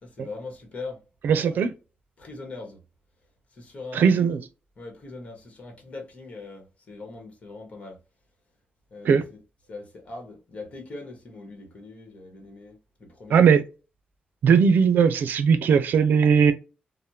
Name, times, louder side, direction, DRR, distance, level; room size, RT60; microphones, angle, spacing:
voice 1, 0.0-1.0 1.5-1.7 2.2-2.8 3.5-4.3 4.8-8.0 8.9-9.4 9.7-13.4, left 3 dB, 45° left, 1.1 m, -41 dB
voice 2, 1.2-1.7 3.9-4.4 9.0-9.2 13.3-13.6 14.4-16.5, right 6 dB, 90° right, 0.5 m, -18 dB
3.4 x 2.1 x 2.7 m
wide cardioid pair, 155°, 3 cm